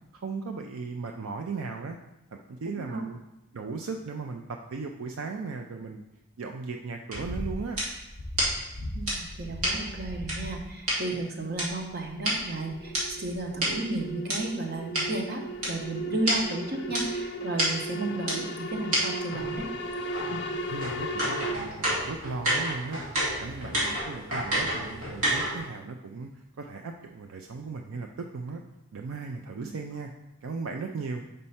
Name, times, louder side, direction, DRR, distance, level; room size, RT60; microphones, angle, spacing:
voice 1, 0.1-2.0 2.3-3.2 3.5-6.0 6.4-7.8 20.7-23.0 23.4-28.6 28.9-30.1 30.4-31.2, right 4 dB, 70° right, 3 dB, 0.4 m, -37 dB
voice 2, 2.7-3.0 8.9-19.7 20.2-20.4 29.6-29.8, right 2 dB, 45° right, 2 dB, 0.9 m, -33 dB
sound 1, 7.1-11.0 11.6-14.4 14.9-15.0 15.6-15.7 16.0-16.1 16.3-16.4 16.9-17.0 17.6-17.7 18.3-18.4 18.9-19.0 19.3-25.7, equal, 90° right, 2.5 m, -30 dB
sound 2, 11.5-21.5, right 1 dB, 50° left, 0.6 m, -36 dB
5.3 x 4.3 x 5.6 m, 0.90 s
head